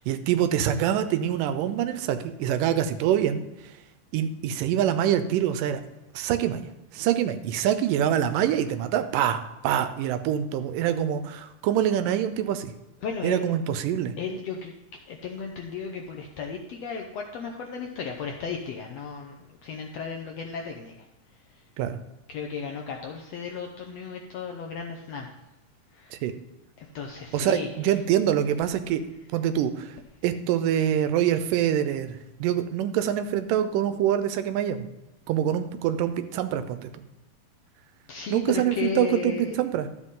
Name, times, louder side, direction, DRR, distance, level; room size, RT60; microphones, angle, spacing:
voice 1, 0.0-3.7 4.1-5.8 6.1-6.6 6.9-12.7 13.2-14.2 21.8-22.0 26.1-26.3 27.3-29.0 29.3-30.0 30.2-34.9 35.3-36.9 38.3-39.9, right 10 dB, 85° right, 11 dB, 2.2 m, -25 dB
voice 2, 13.0-13.5 14.2-14.7 15.1-19.4 19.6-20.9 22.3-25.3 25.9-26.1 26.8-27.7 38.1-39.6, left 5 dB, 75° left, 2 dB, 1.5 m, -34 dB
12.0 x 8.1 x 3.7 m, 0.95 s
omnidirectional pair, 3.8 m